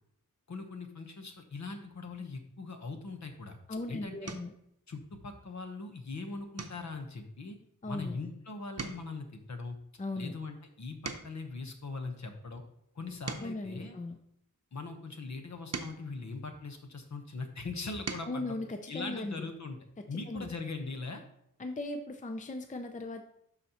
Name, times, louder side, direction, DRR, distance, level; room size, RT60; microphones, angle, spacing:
voice 1, 0.5-3.6 3.9-4.3 4.9-7.6 7.9-9.8 10.2-12.6 12.9-13.9 14.7-18.6 18.9-19.8 20.1-21.2, left 3 dB, 60° left, 5 dB, 1.0 m, -41 dB
sound 1, 3.4-3.7 4.2-4.6 5.1-5.5 5.8-6.0 6.5-8.4 8.6-11.6 12.2-14.7 15.3-17.2 17.7-18.4 19.8-19.9 20.2-20.4, right 4 dB, 50° right, 0.7 m, -45 dB
voice 2, 3.7-4.5 7.8-8.2 10.0-10.3 13.4-14.2 18.2-19.5 20.0-20.5 21.6-23.2, left 2 dB, 25° left, 5 dB, 0.5 m, -38 dB
12.0 x 4.2 x 2.9 m, 0.74 s
wide cardioid pair, 120°, 33 cm